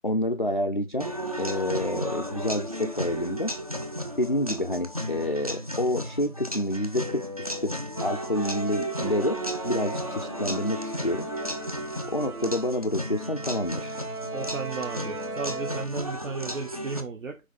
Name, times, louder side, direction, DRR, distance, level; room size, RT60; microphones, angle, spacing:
voice 1, 0.0-3.5 4.2-7.7 8.0-11.3 12.1-14.0, left 1 dB, 35° left, 0.5 m, -28 dB
sound 1, 1.0-17.0, equal, 25° right, 0.6 m, -34 dB
sound 2, 8.0-15.9, right 3 dB, 85° right, 1.1 m, -38 dB
voice 2, 14.3-17.4, right 4 dB, 65° right, 1.2 m, -34 dB
6.0 x 4.9 x 3.9 m
figure-of-eight pair, 165°, 43 cm